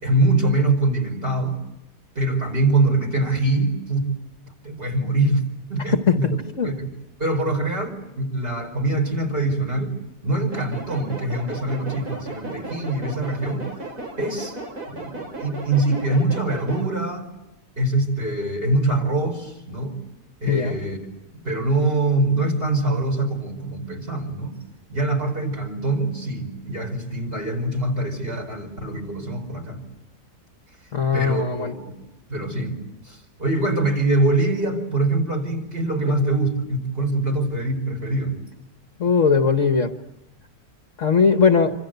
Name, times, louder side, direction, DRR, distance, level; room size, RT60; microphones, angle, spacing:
voice 1, 0.0-1.6 2.2-4.1 4.6-5.4 5.7-6.4 6.6-6.9 7.2-10.0 10.2-13.7 14.2-14.6 14.9-17.3 17.8-20.0 20.4-21.0 21.3-24.6 24.9-29.8 31.1-38.4, right 2 dB, 35° right, 3 dB, 5.4 m, -24 dB
sound 1, 10.5-16.9, right 2 dB, 60° right, 4.4 m, -35 dB
voice 2, 30.9-31.7 39.0-39.9 41.0-41.7, left 5 dB, 50° left, 6 dB, 1.4 m, -19 dB
27.0 x 25.5 x 8.0 m, 0.94 s
omnidirectional pair, 1.8 m